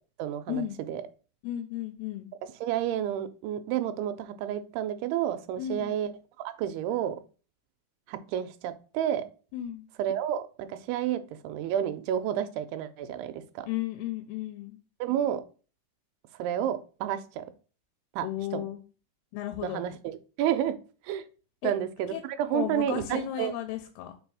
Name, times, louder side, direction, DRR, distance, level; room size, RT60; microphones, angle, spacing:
voice 1, 0.2-0.6 0.9-1.0 2.6-6.1 6.5-7.2 8.1-9.3 10.0-13.7 15.0-15.4 16.4-17.5 18.1-18.3 18.5-18.7 19.6-20.8 21.0-21.2 21.6-23.5, right 10 dB, 85° right, 2.6 m, -30 dB
voice 2, 1.4-2.3 5.6-6.0 9.5-9.9 13.6-14.8 18.2-18.8 19.3-19.9 21.6-21.7 22.1-22.2 22.5-24.1, left 12 dB, 90° left, 2.6 m, -34 dB
5.3 x 4.1 x 4.7 m
omnidirectional pair, 4.5 m